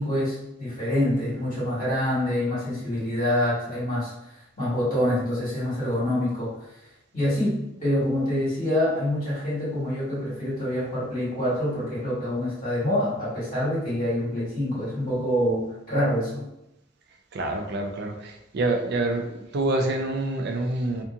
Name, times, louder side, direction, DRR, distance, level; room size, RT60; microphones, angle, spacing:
voice 1, 0.0-4.1 4.6-6.7 7.1-16.5, left 1 dB, 30° left, -11 dB, 1.5 m, -26 dB
voice 2, 17.3-21.0, right 2 dB, 55° right, 3 dB, 0.4 m, -27 dB
2.7 x 2.5 x 2.4 m, 0.87 s
head